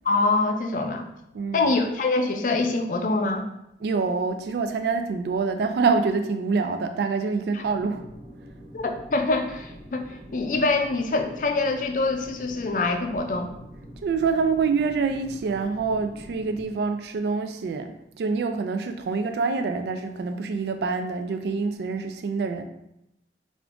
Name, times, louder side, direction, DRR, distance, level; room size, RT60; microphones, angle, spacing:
voice 1, 0.0-1.0 1.5-3.4 7.5-7.6 8.7-13.5, left 3 dB, 45° left, 4 dB, 0.4 m, -25 dB
voice 2, 1.3-1.7 3.8-8.0 14.0-22.6, right 4 dB, 70° right, 7 dB, 0.3 m, -26 dB
sound 1, 7.6-16.6, equal, 25° right, 0.6 m, -45 dB
3.6 x 2.5 x 3.4 m, 0.84 s
head